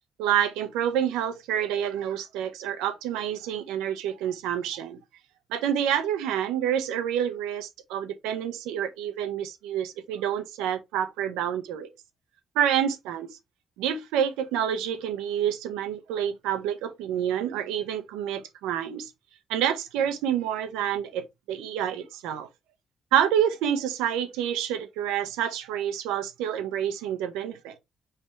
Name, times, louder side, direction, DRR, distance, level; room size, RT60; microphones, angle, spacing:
voice 1, 0.2-5.0 5.5-11.9 12.5-13.3 13.8-19.1 19.5-22.5 23.1-27.9, right 9 dB, 85° right, 0.6 m, -28 dB
5.1 x 3.3 x 3.1 m
supercardioid pair, 50°, 0 cm